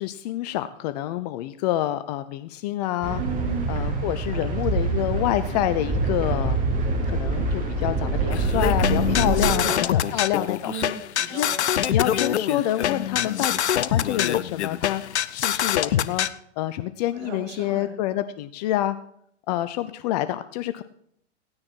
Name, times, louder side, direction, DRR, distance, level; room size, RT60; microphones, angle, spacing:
voice 1, 0.0-3.2 3.7-6.6 7.1-10.7 11.3-11.5 11.9-15.0 15.3-16.3 16.6-19.0 19.5-20.8, left 13 dB, 35° left, 12 dB, 0.6 m, -27 dB
sound 1, 3.0-9.5, right 3 dB, 20° right, 2.8 m, -25 dB
voice 2, 3.2-3.7 4.3-4.8 9.5-11.7 17.1-17.9, right 5 dB, 50° right, 1 dB, 5.2 m, -36 dB
sound 2, 8.3-16.3, left 10 dB, 70° left, 0.7 m, -24 dB
15.5 x 9.5 x 4.6 m, 0.68 s
figure-of-eight pair, 110°, 35 cm